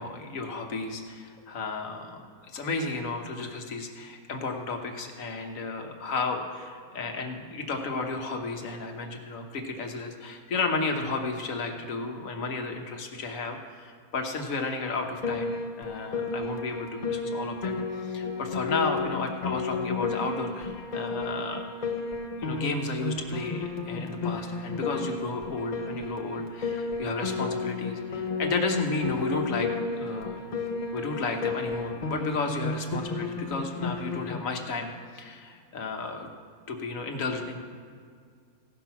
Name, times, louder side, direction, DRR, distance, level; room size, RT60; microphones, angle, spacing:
voice 1, 0.0-17.8 18.0-21.7 22.4-29.7 30.0-30.4 30.9-36.3 36.7-37.6, left 3 dB, 60° left, 4 dB, 1.4 m, -33 dB
Piano, 15.2-34.4, left 3 dB, 35° left, 0.7 m, -32 dB
16.5 x 6.1 x 5.8 m, 2.1 s
omnidirectional pair, 1.6 m